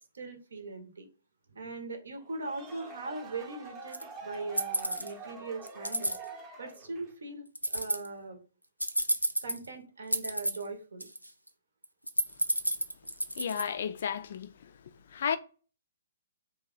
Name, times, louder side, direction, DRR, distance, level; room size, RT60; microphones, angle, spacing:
voice 1, 0.1-1.1 1.5-6.1 6.6-8.4 9.4-11.0, right 3 dB, 65° right, 0.8 m, -40 dB
sound 1, 2.2-7.2, right 4 dB, 20° right, 0.7 m, -45 dB
sound 2, 3.9-4.0 4.6-5.1 5.7-6.2 7.5-8.1 8.8-9.7 10.1-10.7 11.0-11.5 11.8-13.7, right 1 dB, 90° right, 0.4 m, -30 dB
voice 2, 13.4-14.5 15.1-15.4, left 7 dB, 50° left, 0.3 m, -32 dB
2.9 x 2.2 x 3.8 m
figure-of-eight pair, 120°, 0 cm